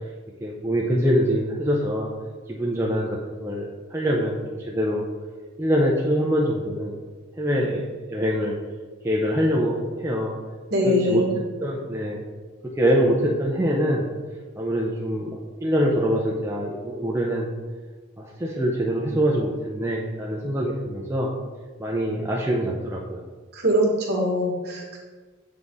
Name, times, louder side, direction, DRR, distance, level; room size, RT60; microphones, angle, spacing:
voice 1, 0.4-2.1 2.5-4.4 4.7-5.0 5.6-7.0 7.4-8.6 9.0-10.3 10.8-11.2 11.6-12.2 12.8-14.1 14.6-17.5 18.2-21.3 21.8-23.2, equal, 10° right, -3 dB, 0.5 m, -24 dB
voice 2, 10.7-11.3 23.5-25.0, equal, 50° right, -2 dB, 1.6 m, -22 dB
7.9 x 3.9 x 3.6 m, 1.4 s
head